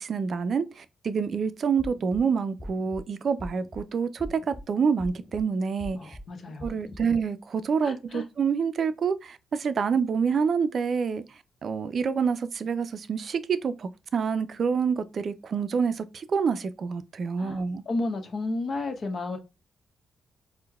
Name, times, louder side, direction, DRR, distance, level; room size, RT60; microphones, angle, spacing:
voice 1, 0.0-6.2 6.6-11.2 11.6-17.8, right 6 dB, 55° right, 0.4 m, -27 dB
sound 1, 1.8-2.2 2.6-3.0 3.4-3.8 4.2-4.6 5.0-5.4 5.8-6.2 6.6-7.0, equal, 15° left, 0.6 m, -41 dB
voice 2, 6.0-6.7 7.8-8.2 17.4-19.4, left 2 dB, 55° left, 0.9 m, -32 dB
4.5 x 2.1 x 2.3 m
supercardioid pair, 50°, 0 cm